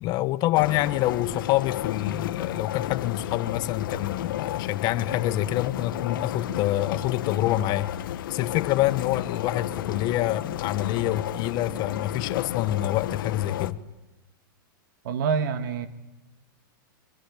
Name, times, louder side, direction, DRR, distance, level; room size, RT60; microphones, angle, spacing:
voice 1, 0.0-13.8, left 14 dB, 35° left, 1.1 m, -26 dB
sound 1, 0.5-13.7, left 12 dB, 75° left, 1.3 m, -32 dB
voice 2, 15.0-15.9, right 6 dB, 65° right, 1.9 m, -26 dB
24.0 x 23.5 x 8.8 m
supercardioid pair, 145°, 11 cm